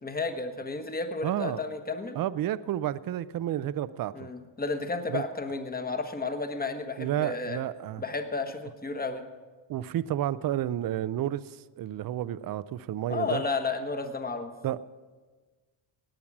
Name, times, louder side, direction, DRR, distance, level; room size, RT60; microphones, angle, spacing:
voice 1, 0.0-2.2 4.1-7.6 8.0-9.2 13.1-14.5, left 3 dB, 20° left, 7 dB, 1.2 m, -32 dB
voice 2, 1.2-1.6 2.1-4.3 5.1-5.2 7.0-8.0 9.7-13.4 14.6-14.9, right 12 dB, 45° right, 16 dB, 0.5 m, -31 dB
18.5 x 8.7 x 6.0 m, 1.4 s
cardioid pair, 125°, 48 cm